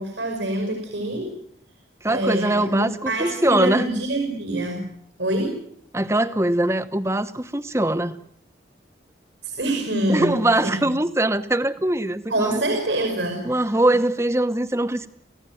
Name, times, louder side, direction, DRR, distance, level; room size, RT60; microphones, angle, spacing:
voice 1, 0.0-1.3 2.1-4.9 5.2-5.6 9.4-10.3 10.6-10.8 12.3-13.7, right 1 dB, 90° right, 4 dB, 5.5 m, -25 dB
voice 2, 2.0-3.8 5.9-8.2 10.1-12.6 13.4-15.1, right 1 dB, 15° right, 12 dB, 1.1 m, -22 dB
28.0 x 16.5 x 9.4 m, 0.72 s
head